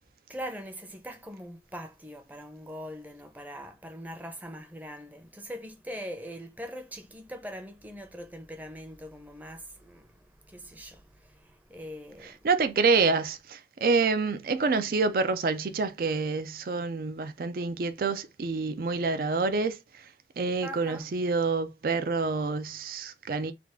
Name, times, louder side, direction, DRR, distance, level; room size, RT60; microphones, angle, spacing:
voice 1, 0.3-12.4 20.6-21.1, equal, 10° right, 0.6 m, -42 dB
voice 2, 12.2-20.1 20.4-23.5, right 4 dB, 55° right, 0.4 m, -27 dB
3.4 x 2.4 x 3.6 m
head